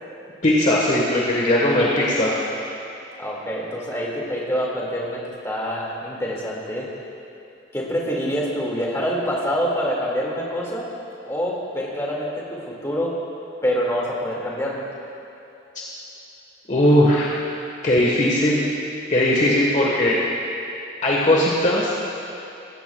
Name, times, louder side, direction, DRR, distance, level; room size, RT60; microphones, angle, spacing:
voice 1, 0.4-2.3 16.7-17.4 17.8-18.6 19.1-20.2 21.0-22.0, left 1 dB, 40° left, -4 dB, 1.3 m, -18 dB
voice 2, 3.2-6.9 7.7-10.8 11.3-13.2 13.6-14.8, equal, 15° left, -4 dB, 2.0 m, -26 dB
17.5 x 15.5 x 2.3 m, 2.9 s
head